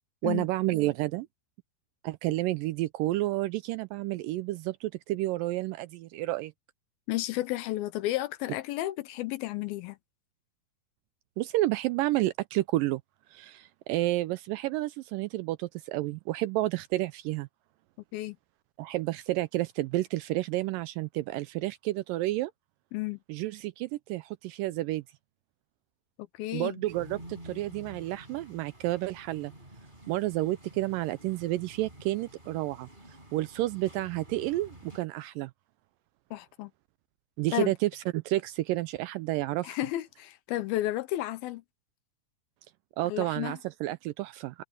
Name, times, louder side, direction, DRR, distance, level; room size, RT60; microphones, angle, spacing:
voice 1, 0.2-1.3 2.0-6.5 11.4-13.0 13.3-17.5 18.8-22.5 23.3-25.0 26.5-29.5 30.1-32.9 33.3-35.5 37.4-39.8 43.0-44.6, right 17 dB, 80° right, 2.0 m, -30 dB
voice 2, 7.1-10.0 18.1-18.4 22.9-23.2 26.2-26.8 36.3-36.7 37.5-37.7 39.6-41.6 43.0-43.6, left 15 dB, 80° left, 2.5 m, -32 dB
sound 1, 26.9-35.0, right 1 dB, 10° right, 5.6 m, -50 dB
omnidirectional pair, 4.4 m